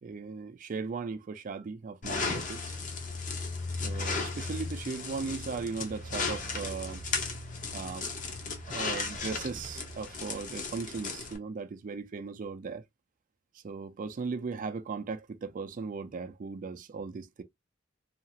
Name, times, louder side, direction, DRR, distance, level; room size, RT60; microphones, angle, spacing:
voice 1, 0.0-2.8 3.8-7.0 7.7-8.1 8.7-12.8 13.5-17.4, right 4 dB, 45° right, 0.4 m, -37 dB
sound 1, 2.0-11.4, left 3 dB, 45° left, 0.7 m, -35 dB
2.8 x 2.4 x 2.7 m
head